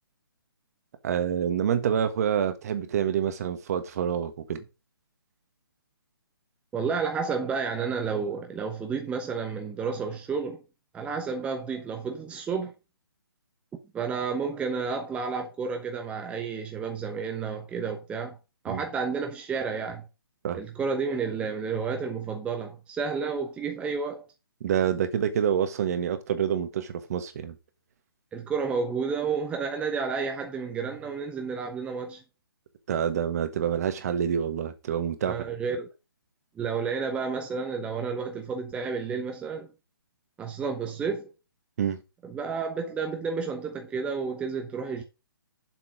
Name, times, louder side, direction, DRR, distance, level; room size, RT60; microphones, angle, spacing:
voice 1, 1.0-4.6 18.7-18.8 20.4-20.6 24.6-27.5 32.9-35.4 41.8-42.0, right 8 dB, 40° right, 1.5 m, -27 dB
voice 2, 6.7-10.6 10.9-12.7 13.9-18.4 18.6-20.1 20.5-24.3 28.3-32.2 35.2-35.9 36.6-39.7 40.4-41.3 42.2-45.0, right 5 dB, 10° right, 0.9 m, -31 dB
7.5 x 6.0 x 6.0 m
figure-of-eight pair, 140°, 12 cm